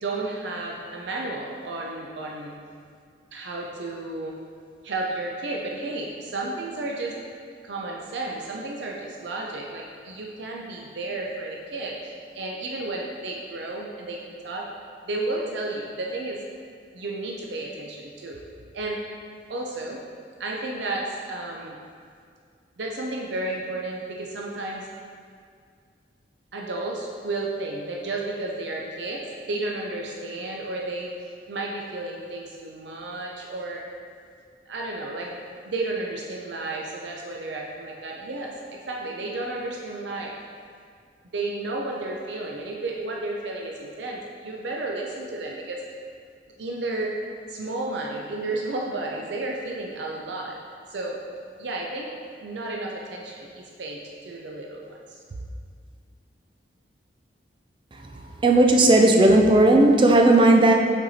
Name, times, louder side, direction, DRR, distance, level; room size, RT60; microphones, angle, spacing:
voice 1, 0.0-2.5 3.3-4.3 4.8-7.2 7.6-14.7 15.1-16.4 16.9-18.4 18.7-19.0 19.5-20.0 20.4-21.8 22.8-24.9 26.5-31.1 31.5-33.8 34.7-35.4 35.6-40.3 41.3-45.8 46.6-47.1 47.5-50.6 50.9-51.2 51.6-52.1 52.4-55.2, right 2 dB, 75° right, -1 dB, 0.5 m, -32 dB
voice 2, 58.4-60.7, right 2 dB, 25° right, 2 dB, 0.4 m, -15 dB
5.6 x 4.4 x 4.1 m, 2.2 s
head